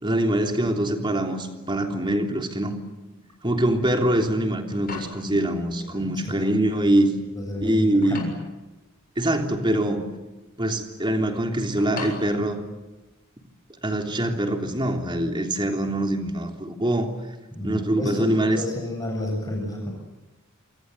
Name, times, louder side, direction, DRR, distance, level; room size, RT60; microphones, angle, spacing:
voice 1, 0.0-2.8 3.4-7.1 7.6-8.4 9.2-10.0 10.6-12.6 13.8-17.1 17.6-18.6, right 1 dB, 20° right, 4 dB, 3.3 m, -24 dB
sound 1, 4.7-13.4, left 3 dB, 45° left, 7.0 m, -42 dB
voice 2, 5.9-6.4 7.4-8.3 17.5-19.9, left 1 dB, 15° left, 0 dB, 7.7 m, -31 dB
28.5 x 26.0 x 8.0 m, 1.1 s
head